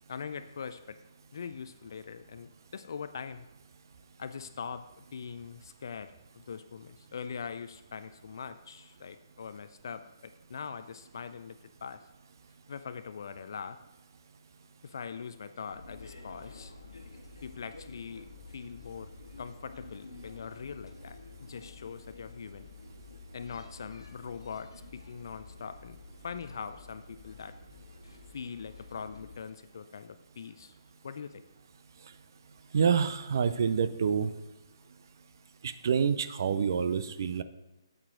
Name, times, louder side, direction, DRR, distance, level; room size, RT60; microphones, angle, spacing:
voice 1, 0.1-1.0 1.3-3.5 4.2-12.0 12.7-13.8 14.8-16.7 17.4-19.1 19.4-22.7 23.3-26.0 26.2-27.5 28.3-30.8 31.0-31.4, left 6 dB, 55° left, 10 dB, 0.4 m, -42 dB
sound 1, 15.7-29.3, left 3 dB, 75° left, 1.4 m, -50 dB
voice 2, 32.7-34.3 35.6-37.4, right 6 dB, 50° right, 12 dB, 0.5 m, -27 dB
8.5 x 8.0 x 3.7 m, 0.95 s
figure-of-eight pair, 135°, 2 cm